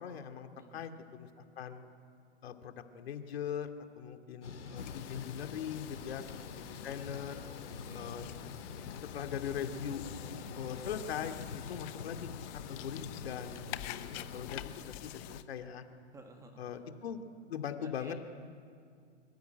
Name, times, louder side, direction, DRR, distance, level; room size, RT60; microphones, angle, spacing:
voice 1, 0.0-1.8 2.4-3.7 4.0-7.4 7.9-8.3 9.1-10.0 10.5-11.4 11.7-12.3 12.7-15.8 16.6-18.1, left 8 dB, 60° left, 6 dB, 2.5 m, -41 dB
voice 2, 0.5-1.0 5.9-6.4 7.8-8.1 16.1-16.8 17.8-18.1, right 3 dB, 10° right, 4 dB, 1.7 m, -55 dB
Thunder / Rain, 4.4-14.6, left 5 dB, 75° left, 3.5 m, -46 dB
sound 1, 4.8-15.4, left 14 dB, 20° left, 0.8 m, -47 dB
24.5 x 24.0 x 9.2 m, 2.3 s
hypercardioid pair, 150°, 35 cm